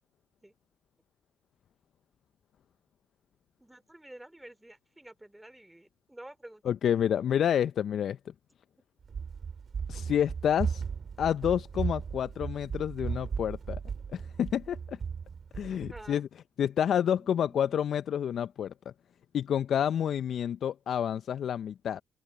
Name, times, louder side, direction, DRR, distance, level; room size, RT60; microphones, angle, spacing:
voice 1, 3.6-6.6 15.8-16.2 17.0-17.8, right 1 dB, 10° right, 3.6 m, -50 dB
voice 2, 6.6-8.2 9.9-10.8 11.2-13.8 14.1-15.0 15.5-16.3 16.6-18.7 19.3-22.0, left 9 dB, 60° left, 0.8 m, -29 dB
Run, 9.0-16.1, right 6 dB, 50° right, 3.0 m, -36 dB
open air
hypercardioid pair, 50°, 0 cm